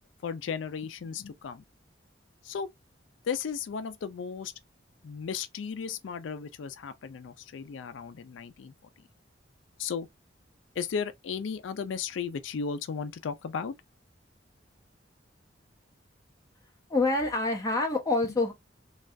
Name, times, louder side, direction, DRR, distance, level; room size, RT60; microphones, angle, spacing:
voice 1, 0.2-1.6 2.4-2.7 3.2-4.5 5.0-8.7 9.8-10.1 10.8-13.7, left 6 dB, 90° left, 0.4 m, -35 dB
voice 2, 16.9-18.5, left 2 dB, 20° left, 1.0 m, -26 dB
3.3 x 2.3 x 2.5 m
head